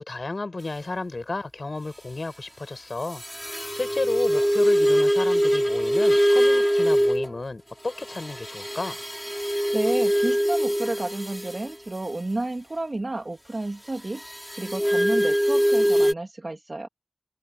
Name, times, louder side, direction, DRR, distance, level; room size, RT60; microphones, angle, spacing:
voice 1, 0.0-3.2 3.7-9.0, left 3 dB, 90° left, 7.2 m, -32 dB
sound 1, 3.1-7.3 8.0-11.7 14.2-16.1, equal, 5° right, 3.7 m, -23 dB
voice 2, 9.7-16.9, right 2 dB, 65° right, 2.1 m, -31 dB
wide cardioid pair, 50°, 0 cm